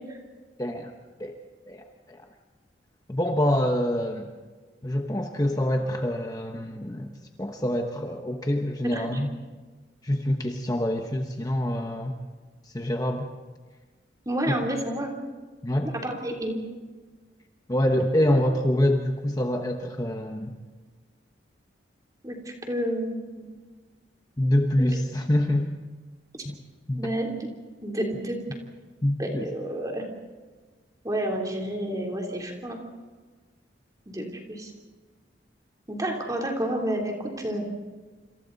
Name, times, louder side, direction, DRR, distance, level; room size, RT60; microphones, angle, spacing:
voice 1, 0.6-0.9 1.2-1.3 1.7-2.2 3.1-4.3 4.8-7.1 7.4-9.3 10.0-12.2 12.7-13.3 15.6-15.9 17.7-20.6 24.4-25.7 26.4-26.5 26.9-27.0 29.0-29.5, left 1 dB, 20° left, 3 dB, 1.0 m, -26 dB
voice 2, 8.8-9.2 14.3-15.1 15.9-16.6 22.2-23.5 27.0-27.5 27.8-28.4 29.2-30.0 31.0-32.8 34.1-34.7 35.9-37.6, right 1 dB, 20° right, 0 dB, 3.4 m, -30 dB
27.5 x 26.5 x 4.1 m, 1.4 s
head